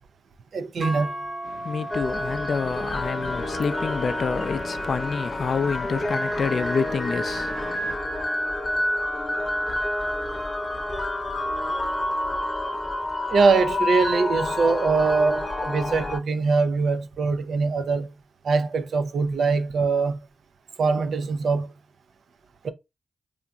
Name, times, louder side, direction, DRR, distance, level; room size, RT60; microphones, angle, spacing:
voice 1, 0.5-1.1 13.3-18.1 18.4-20.2 20.8-21.7 22.6-22.7, right 4 dB, 70° right, 0.4 m, -22 dB
sound 1, 0.8-9.0, right 1 dB, 50° right, 0.8 m, -40 dB
voice 2, 1.4-8.0, left 5 dB, 65° left, 0.3 m, -28 dB
sound 2, 1.9-16.2, left 1 dB, 35° left, 0.8 m, -28 dB
2.7 x 2.5 x 2.2 m
supercardioid pair, 40°, 0 cm